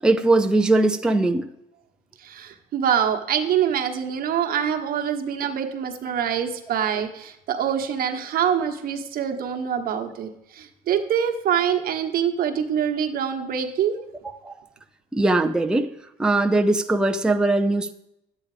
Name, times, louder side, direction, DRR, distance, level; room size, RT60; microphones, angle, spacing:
voice 1, 0.0-1.5 14.4-14.5 15.1-15.9 16.2-17.9, right 2 dB, 5° right, 5 dB, 0.6 m, -20 dB
voice 2, 2.2-14.0, right 8 dB, 60° right, 4 dB, 1.3 m, -25 dB
11.0 x 8.7 x 5.0 m, 0.83 s
cardioid pair, 110°, 17 cm